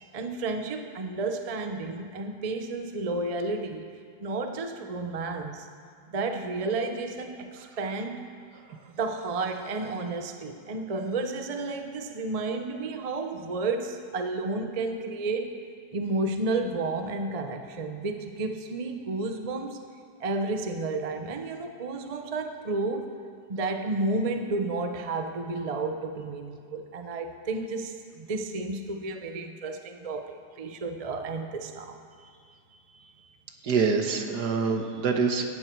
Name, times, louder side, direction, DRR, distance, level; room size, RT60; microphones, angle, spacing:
voice 1, 0.1-3.9 4.2-5.7 6.1-8.3 8.9-15.6 15.9-19.8 20.2-23.1 23.5-32.0, right 3 dB, 30° right, 6 dB, 0.7 m, -31 dB
voice 2, 33.6-35.5, right 5 dB, 70° right, 4 dB, 1.8 m, -25 dB
17.0 x 14.5 x 4.6 m, 2.2 s
omnidirectional pair, 1.8 m